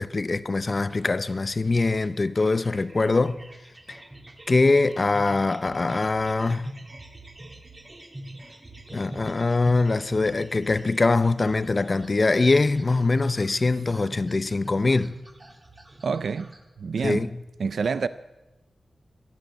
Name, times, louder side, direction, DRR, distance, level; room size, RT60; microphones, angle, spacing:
voice 1, 0.0-3.4 3.9-4.0 4.5-6.7 8.9-15.1 17.0-17.3, left 3 dB, 35° left, 0.6 m, -23 dB
sound 1, 0.7-16.6, right 1 dB, 25° right, 2.1 m, -45 dB
voice 2, 16.0-17.3 17.6-18.1, right 5 dB, 85° right, 0.5 m, -28 dB
16.0 x 12.0 x 7.4 m
wide cardioid pair, 140°, 0 cm